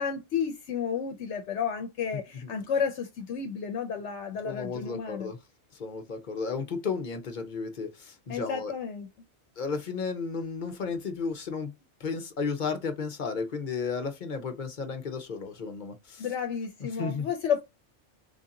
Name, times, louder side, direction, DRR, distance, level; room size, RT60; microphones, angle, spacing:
voice 1, 0.0-5.3 8.3-9.1 16.2-17.6, left 7 dB, 80° left, 0.9 m, -31 dB
voice 2, 4.4-5.4 5.7-8.7 9.6-11.7 12.0-16.3 17.0-17.2, left 5 dB, 50° left, 0.8 m, -33 dB
3.4 x 2.7 x 3.7 m
omnidirectional pair, 1.2 m